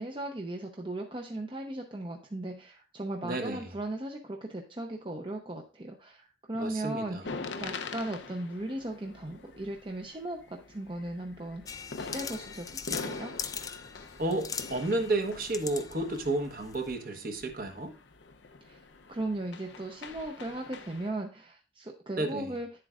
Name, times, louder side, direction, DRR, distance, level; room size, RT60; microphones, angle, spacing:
voice 1, 0.0-13.3 18.6-18.8 19.1-22.7, right 1 dB, 30° right, 0.7 m, -37 dB
voice 2, 3.2-3.6 6.5-7.3 14.2-17.9 22.2-22.6, right 2 dB, 50° right, 1.1 m, -32 dB
sound 1, 7.2-21.1, left 4 dB, 85° left, 0.7 m, -44 dB
sound 2, 11.7-17.0, left 6 dB, 20° left, 0.4 m, -41 dB
10.0 x 7.5 x 2.5 m
head